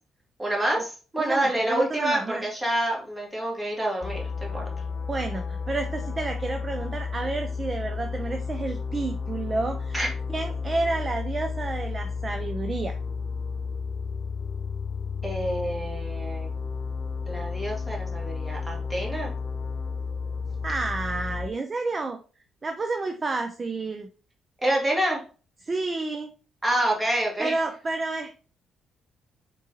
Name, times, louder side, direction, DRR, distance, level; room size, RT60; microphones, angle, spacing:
voice 1, 0.4-4.7 9.9-10.1 15.2-16.5 17.3-19.3 24.6-25.2 26.6-27.5, right 1 dB, 15° right, -2 dB, 1.8 m, -27 dB
voice 2, 1.2-2.4 5.1-10.0 10.3-13.0 20.6-22.2 22.6-24.1 25.6-26.3 27.4-28.4, right 3 dB, 30° right, 6 dB, 0.5 m, -30 dB
sound 1, 4.0-21.5, left 5 dB, 50° left, 0.3 m, -32 dB
3.8 x 3.7 x 2.8 m, 0.36 s
cardioid pair, 90°, 0 cm